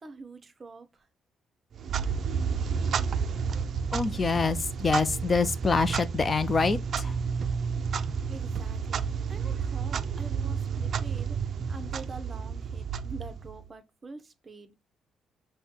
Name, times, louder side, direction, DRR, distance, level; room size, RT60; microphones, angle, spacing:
voice 1, 0.0-1.1 8.3-11.4 11.7-14.7, right 3 dB, 35° right, 0.7 m, -45 dB
Clock, 1.7-13.7, right 6 dB, 60° right, 0.4 m, -31 dB
voice 2, 3.9-7.1, left 4 dB, 35° left, 0.4 m, -26 dB
5.5 x 2.1 x 4.4 m
cardioid pair, 90°, 0 cm